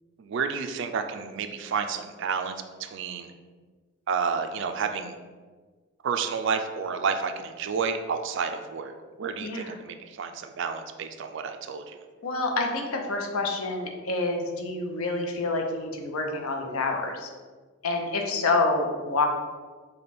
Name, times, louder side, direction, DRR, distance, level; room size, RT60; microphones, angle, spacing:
voice 1, 0.2-3.3 4.1-5.1 6.0-8.9 9.2-12.0, right 5 dB, 55° right, 7 dB, 0.3 m, -30 dB
voice 2, 9.4-9.7 12.2-17.3 17.8-19.3, left 3 dB, 80° left, 2 dB, 0.7 m, -27 dB
5.1 x 2.3 x 4.2 m, 1.4 s
head